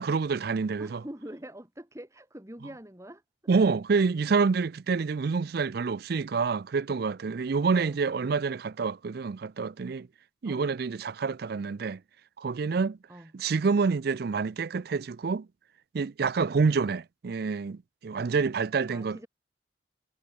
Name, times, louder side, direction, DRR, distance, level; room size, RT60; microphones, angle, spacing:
voice 1, 0.0-1.0 3.5-10.1 10.4-12.0 12.4-13.0 13.3-15.5 15.9-19.2, right 4 dB, 50° right, 0.4 m, -27 dB
voice 2, 0.8-3.2 7.7-8.0 10.5-10.7 13.1-13.3 18.9-19.3, right 1 dB, 15° right, 1.7 m, -44 dB
head